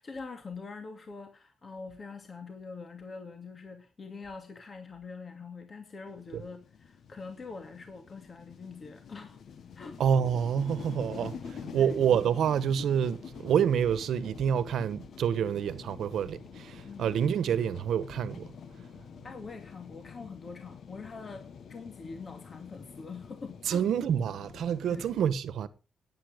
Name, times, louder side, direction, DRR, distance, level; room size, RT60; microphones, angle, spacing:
voice 1, 0.0-9.4 9.8-10.0 11.7-12.0 16.8-17.2 19.2-23.8 24.9-25.1, left 4 dB, 45° left, 2.4 m, -44 dB
sound 1, 6.1-25.1, left 7 dB, 70° left, 1.4 m, -47 dB
voice 2, 10.0-18.5 23.6-25.7, right 8 dB, 80° right, 1.3 m, -28 dB
17.0 x 8.9 x 5.2 m
cardioid pair, 75°, 0 cm